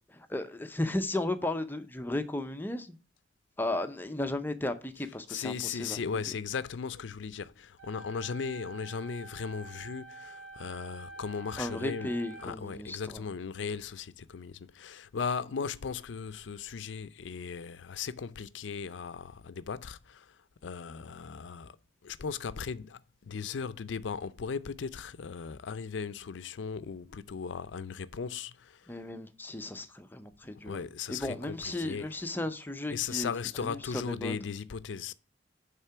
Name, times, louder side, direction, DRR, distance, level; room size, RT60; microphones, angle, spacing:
voice 1, 0.1-3.0 3.6-6.0 11.6-13.2 28.9-30.8 31.1-33.3 33.6-34.4, left 1 dB, 10° left, 0.5 m, -35 dB
voice 2, 5.0-21.8 22.0-28.9 30.6-32.3 32.9-35.1, left 6 dB, 75° left, 0.5 m, -37 dB
sound 1, 7.8-12.8, right 2 dB, 80° right, 1.2 m, -47 dB
9.2 x 3.7 x 5.5 m
head